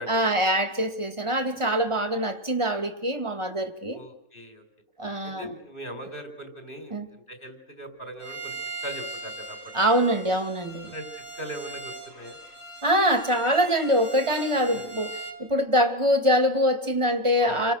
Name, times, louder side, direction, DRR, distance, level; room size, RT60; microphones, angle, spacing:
voice 1, 0.1-4.0 5.0-5.5 6.9-7.1 9.7-10.9 12.8-17.7, equal, 20° right, 2.4 m, -24 dB
voice 2, 3.9-4.6 5.2-8.5 8.8-9.9 10.9-11.1 11.4-12.4 14.7-14.9 17.4-17.7, equal, 35° left, 5.2 m, -40 dB
Bowed string instrument, 8.2-15.4, right 3 dB, 55° left, 4.9 m, -40 dB
29.5 x 25.0 x 6.5 m
omnidirectional pair, 1.5 m